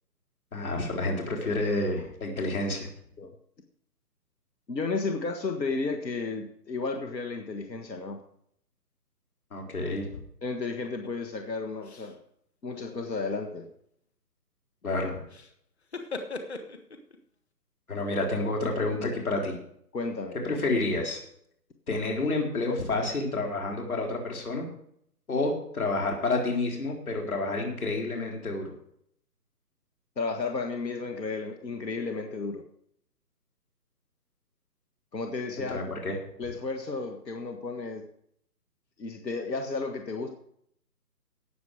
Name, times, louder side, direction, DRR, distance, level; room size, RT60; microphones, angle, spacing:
voice 1, 0.5-2.9 9.5-10.1 14.8-15.1 17.9-19.5 20.4-21.2 21.9-24.6 25.3-28.7 35.6-36.2, left 2 dB, 60° left, 1 dB, 4.2 m, -29 dB
voice 2, 4.7-8.2 10.4-12.2 12.6-13.7 19.9-20.4 30.2-32.6 35.1-35.8 36.4-38.0 39.0-40.3, left 3 dB, 90° left, 4 dB, 1.9 m, -33 dB
sound 1, 10.8-11.1 11.8-12.2 12.6-13.4 15.3-15.5 15.8-17.2, left 3 dB, 40° left, 1.5 m, -40 dB
18.0 x 7.3 x 5.0 m, 0.68 s
hypercardioid pair, 175°, 49 cm